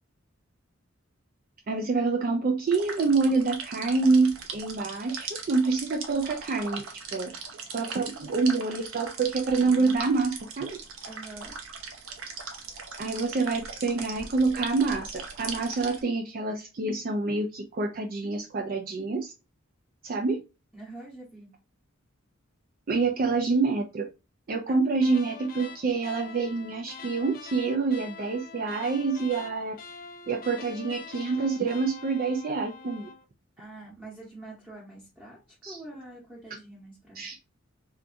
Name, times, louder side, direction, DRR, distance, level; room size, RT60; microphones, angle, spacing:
voice 1, 1.7-6.8 7.1-7.3 7.7-10.8 13.0-19.3 20.0-20.4 22.9-24.0 24.5-29.7 30.3-33.1 35.6-35.8 37.2-37.4, right 4 dB, 45° right, 2 dB, 0.4 m, -27 dB
sound 1, 2.7-16.0, right 5 dB, 90° right, 0.7 m, -40 dB
voice 2, 11.1-11.5 20.7-21.5 24.7-24.8 33.6-37.2, right 2 dB, 5° right, -5 dB, 1.0 m, -45 dB
sound 2, 25.0-33.2, left 5 dB, 45° left, 0.4 m, -45 dB
3.5 x 2.6 x 2.5 m, 0.28 s
head